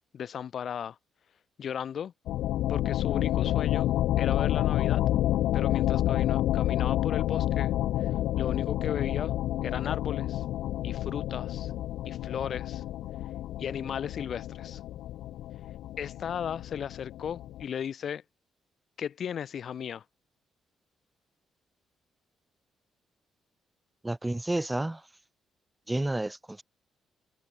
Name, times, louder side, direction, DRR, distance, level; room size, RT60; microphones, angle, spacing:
voice 1, 0.1-1.0 1.6-2.1 2.7-5.0 5.5-7.7 8.0-8.1 8.4-9.3 9.6-10.4 10.8-11.7 12.0-12.8 13.6-14.8 16.0-18.2 19.0-20.0, left 8 dB, 60° left, 1.0 m, -35 dB
sound 1, 2.3-17.6, left 14 dB, 85° left, 0.6 m, -29 dB
voice 2, 24.0-25.1 25.9-26.6, right 1 dB, 10° right, 0.8 m, -30 dB
cardioid pair, 90°, 0 cm